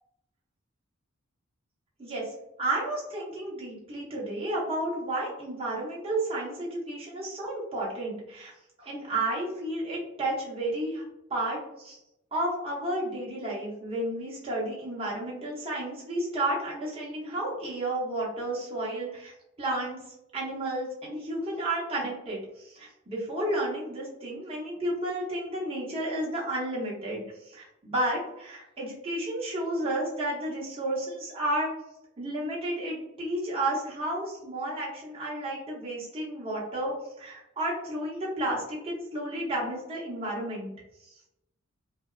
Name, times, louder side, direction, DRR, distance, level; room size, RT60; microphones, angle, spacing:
voice 1, 2.0-2.3 2.6-8.5 8.8-12.0 12.3-19.3 19.6-20.0 20.3-31.7 32.2-40.7 41.1-41.2, right 1 dB, 30° right, -6 dB, 0.7 m, -32 dB
2.6 x 2.1 x 2.3 m, 0.86 s
head